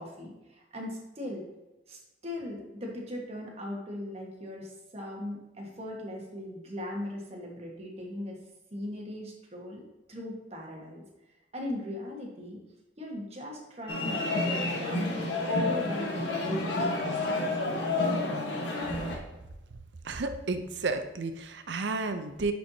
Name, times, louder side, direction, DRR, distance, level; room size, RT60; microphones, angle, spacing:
voice 1, 0.0-1.5 1.9-8.4 8.7-9.8 10.1-11.0 11.5-12.6 13.0-15.2 15.5-18.3, left 1 dB, 35° right, -1 dB, 1.4 m, -39 dB
sound 1, 13.9-19.2, left 2 dB, 65° left, 1.4 m, -30 dB
voice 2, 20.0-22.5, right 3 dB, 65° right, 8 dB, 0.6 m, -32 dB
9.5 x 4.4 x 2.8 m, 1.0 s
head